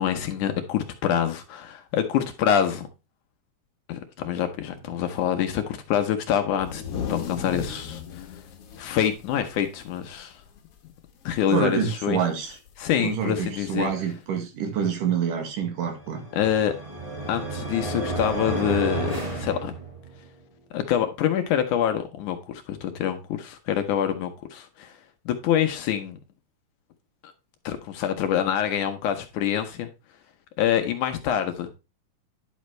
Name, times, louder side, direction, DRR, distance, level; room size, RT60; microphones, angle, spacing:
voice 1, 0.0-2.9 3.9-6.8 7.1-8.4 8.8-10.4 11.3-12.2 12.8-13.9 16.3-16.7 17.3-19.7 20.7-25.0 25.3-26.2 27.7-29.9 30.6-31.7, left 9 dB, 75° left, 2.2 m, -26 dB
sound 1, 6.5-10.2 10.6-10.7 11.1-11.5 12.7-12.8 13.8-13.9, left 6 dB, 55° left, 2.0 m, -36 dB
voice 2, 11.5-12.6 13.0-16.2, right 7 dB, 80° right, 3.5 m, -27 dB
sound 2, 16.0-20.3, right 2 dB, 25° right, 0.7 m, -31 dB
10.5 x 6.4 x 3.2 m
omnidirectional pair, 3.8 m